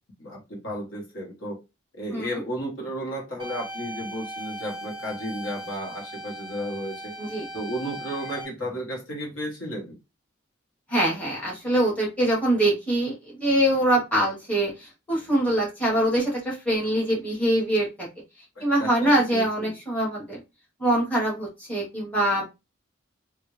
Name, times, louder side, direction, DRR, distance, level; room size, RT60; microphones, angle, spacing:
voice 1, 0.2-1.6 1.9-7.1 7.5-10.0 18.5-19.8, equal, 65° left, -1 dB, 1.6 m, -33 dB
sound 1, 3.4-8.4, right 1 dB, 20° right, 0.7 m, -38 dB
voice 2, 10.9-13.1 13.4-18.1 18.6-20.4 20.8-22.4, right 1 dB, 5° left, -4 dB, 1.3 m, -23 dB
3.4 x 2.7 x 3.2 m, 0.25 s
head